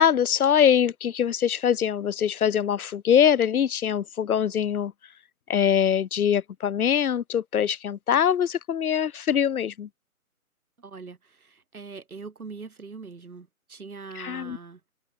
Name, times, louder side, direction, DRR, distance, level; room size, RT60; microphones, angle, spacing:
voice 1, 0.0-4.9 5.5-9.9 14.2-14.6, left 8 dB, 85° left, 0.7 m, -23 dB
voice 2, 10.8-14.9, right 4 dB, 85° right, 4.0 m, -42 dB
open air
hypercardioid pair, 175°, 43 cm